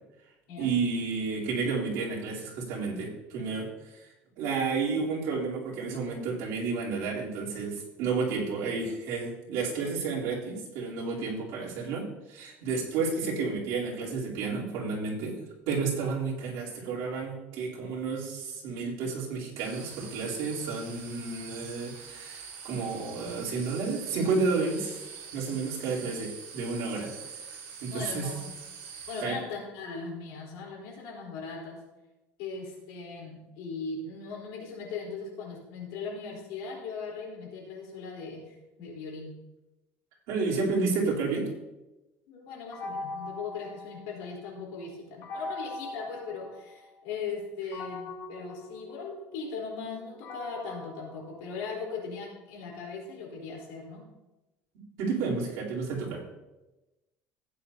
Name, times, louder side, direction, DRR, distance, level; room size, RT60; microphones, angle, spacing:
voice 1, 0.6-4.0 4.4-15.3 15.7-25.0 25.3-27.1 27.8-28.3 29.2-29.3 40.3-41.5 55.0-56.2, right 4 dB, 65° right, -5 dB, 3.5 m, -31 dB
sound 1, 19.6-29.2, right 6 dB, 85° right, 3.0 m, -44 dB
voice 2, 27.9-28.5 29.1-31.8 32.4-39.3 42.3-54.0, left 4 dB, 85° left, -1 dB, 4.0 m, -39 dB
sound 2, 42.7-44.5 45.2-47.0 47.7-52.0, left 2 dB, 55° left, 1.9 m, -41 dB
15.5 x 9.3 x 2.8 m, 1.0 s
cardioid pair, 165°, 6 cm